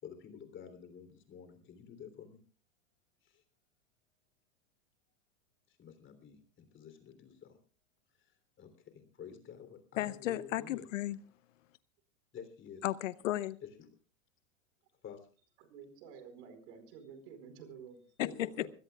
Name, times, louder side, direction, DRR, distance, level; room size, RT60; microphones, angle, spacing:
voice 1, 0.0-2.4 5.8-7.6 8.6-10.9 12.3-12.8 13.8-13.9 15.0-15.2 18.2-18.7, left 8 dB, 30° left, 9 dB, 3.3 m, -49 dB
voice 2, 10.0-11.2 12.8-13.6 18.2-18.3, left 15 dB, 70° left, 18 dB, 0.8 m, -34 dB
voice 3, 15.6-18.1 18.6-18.7, right 6 dB, 60° right, 9 dB, 4.7 m, -51 dB
24.5 x 17.0 x 2.4 m, 0.37 s
hypercardioid pair, 110°, 39 cm